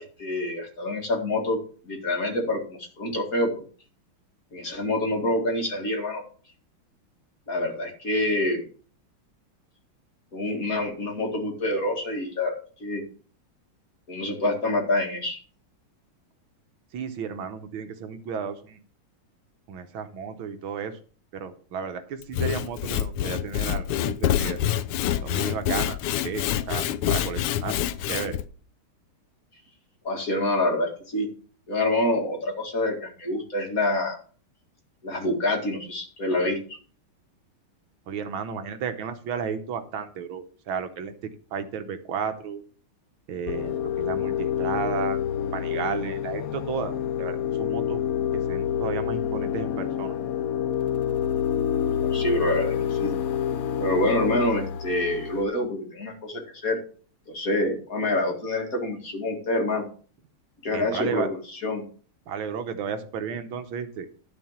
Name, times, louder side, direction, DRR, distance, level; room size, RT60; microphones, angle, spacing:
voice 1, 0.0-1.6 1.8-3.6 4.5-6.2 7.5-8.6 10.3-12.5 12.8-13.0 14.1-15.4 30.0-31.3 31.7-34.2 35.0-36.8 52.0-53.1 53.8-56.8 57.3-59.8 60.6-61.3 61.6-61.8, left 1 dB, 40° left, 2 dB, 2.5 m, -26 dB
voice 2, 16.9-18.8 19.7-21.0 21.3-24.6 25.2-26.0 26.2-27.8 28.1-28.4 38.1-42.7 43.3-45.2 45.5-48.0 48.3-50.2 60.7-61.3 62.3-64.1, right 6 dB, 75° right, 9 dB, 1.7 m, -33 dB
Sawing / Wood, 22.2-28.4, left 11 dB, 90° left, 1.6 m, -26 dB
sound 1, 43.5-55.4, left 9 dB, 65° left, 0.9 m, -27 dB
12.0 x 4.3 x 7.2 m, 0.42 s
omnidirectional pair, 2.3 m